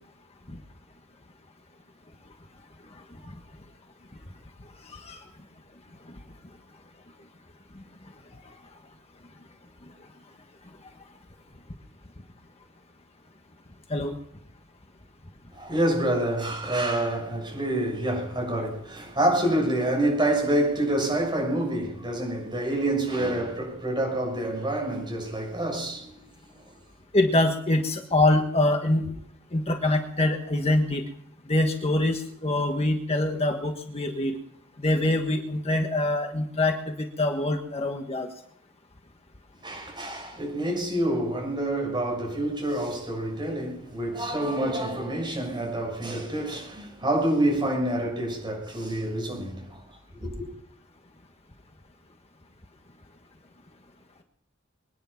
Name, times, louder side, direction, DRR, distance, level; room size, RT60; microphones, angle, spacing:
voice 1, 4.9-5.2 13.9-14.1 27.1-29.1 29.5-31.0 31.5-34.4 34.8-38.3, left 1 dB, 30° left, 1.5 m, -24 dB
voice 2, 15.5-26.2 39.6-49.8 50.1-50.5, right 1 dB, 25° right, 6.7 m, -27 dB
24.0 x 10.0 x 5.9 m
head